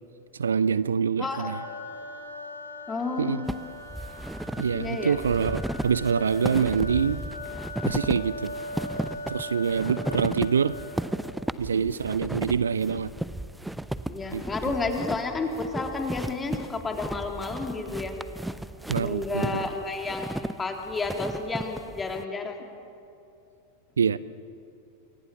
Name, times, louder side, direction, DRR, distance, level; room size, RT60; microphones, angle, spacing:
voice 1, 0.3-1.6 3.2-3.4 4.6-7.2 7.8-8.5 9.3-10.8 11.6-13.1 14.3-14.4 18.9-19.5 24.0-24.2, right 6 dB, 70° right, 18 dB, 0.6 m, -25 dB
voice 2, 1.2-1.5 2.9-3.4 4.7-5.2 10.0-10.1 11.7-11.9 14.1-18.2 19.0-22.7, left 3 dB, 15° left, 3 dB, 3.3 m, -31 dB
sound 1, 1.3-11.2, left 1 dB, 75° left, 2.9 m, -40 dB
sound 2, 3.5-22.2, right 1 dB, 5° right, 0.8 m, -35 dB
28.0 x 23.0 x 7.2 m, 2.7 s
figure-of-eight pair, 90°, 0 cm